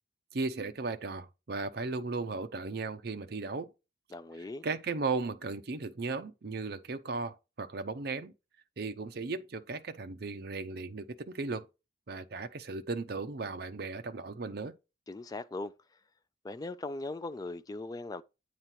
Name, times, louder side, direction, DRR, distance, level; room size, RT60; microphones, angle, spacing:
voice 1, 0.3-3.7 4.6-8.3 8.8-11.7 12.1-14.7, right 3 dB, 60° right, 0.6 m, -36 dB
voice 2, 4.1-4.7 15.1-15.7 16.4-18.2, left 2 dB, 20° left, 0.3 m, -39 dB
9.0 x 3.1 x 5.6 m
head